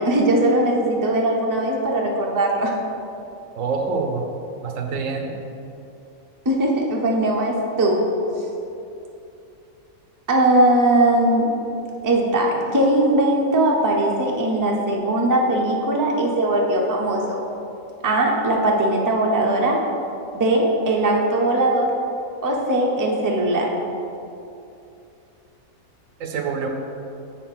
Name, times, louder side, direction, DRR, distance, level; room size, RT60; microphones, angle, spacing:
voice 1, 0.0-2.7 6.4-8.0 8.4-8.5 10.3-11.6 12.0-17.4 18.0-19.8 20.3-21.9 22.4-23.7, right 1 dB, 20° right, -1 dB, 0.6 m, -20 dB
voice 2, 3.6-4.2 4.6-5.3 26.2-26.7, right 5 dB, 70° right, 3 dB, 1.1 m, -26 dB
7.0 x 4.5 x 5.9 m, 2.8 s
omnidirectional pair, 1.5 m